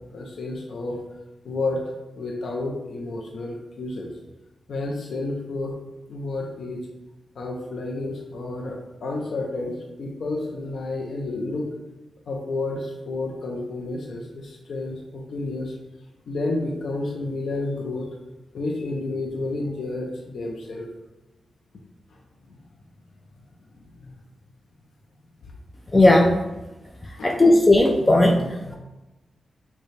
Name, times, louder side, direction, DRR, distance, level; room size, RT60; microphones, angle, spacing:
voice 1, 0.1-1.0 1.4-1.8 2.2-4.1 4.7-5.8 6.1-6.9 7.3-11.7 12.3-15.8 16.3-18.2 18.5-20.9 22.5-22.6 23.7-24.1 27.2-27.3, left 2 dB, 75° left, -1 dB, 0.6 m, -30 dB
voice 2, 25.9-26.3 27.2-28.4 28.7-28.8, left 1 dB, 20° left, 1 dB, 0.4 m, -16 dB
6.5 x 2.2 x 3.3 m, 1.0 s
wide cardioid pair, 110°, 0 cm